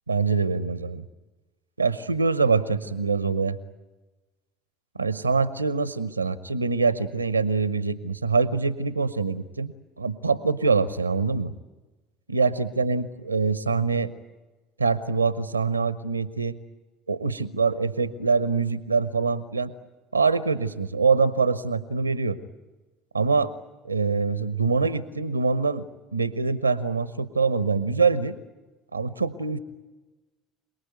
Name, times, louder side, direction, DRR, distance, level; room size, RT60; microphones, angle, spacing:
voice 1, 0.1-1.0 1.8-3.6 5.0-11.5 12.3-14.1 14.8-16.6 17.1-19.7 20.1-22.4 23.1-23.5 23.8-28.3 28.9-29.6, right 4 dB, 90° right, 16 dB, 0.8 m, -24 dB
27.0 x 19.5 x 9.1 m, 1.2 s
figure-of-eight pair, 65°, 0 cm